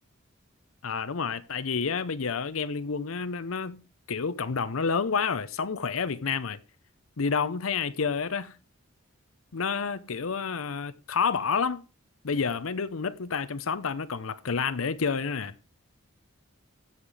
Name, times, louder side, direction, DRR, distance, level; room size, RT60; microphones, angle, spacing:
voice 1, 0.8-3.8 4.1-6.6 7.2-8.5 9.5-11.8 12.2-15.5, left 5 dB, 85° left, 0.7 m, -29 dB
15.5 x 5.8 x 4.9 m
head